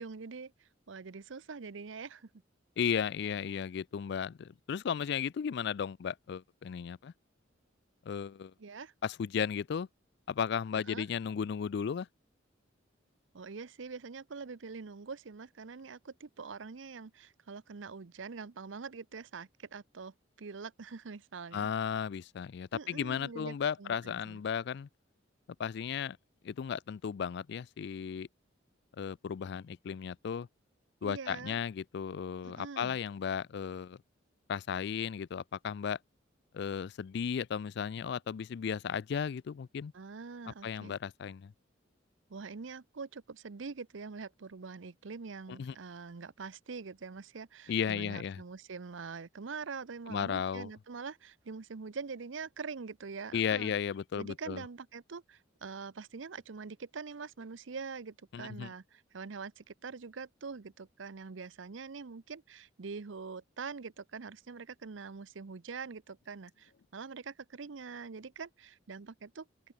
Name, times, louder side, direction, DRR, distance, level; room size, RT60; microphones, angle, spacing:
voice 1, 0.0-2.3 8.6-8.9 10.7-11.1 13.3-21.7 22.7-24.4 31.0-31.6 32.4-33.0 39.9-41.0 42.3-53.7 54.1-69.5, right 5 dB, 80° right, 0.7 m, -44 dB
voice 2, 2.8-7.1 8.1-8.5 9.0-9.9 10.3-12.1 21.5-24.9 25.6-26.2 26.4-28.3 29.0-30.5 31.0-34.0 34.5-36.0 36.5-39.9 40.6-41.5 45.6-45.7 47.7-48.4 50.1-50.7 53.3-54.6 58.3-58.7, left 7 dB, 60° left, 0.3 m, -35 dB
open air
head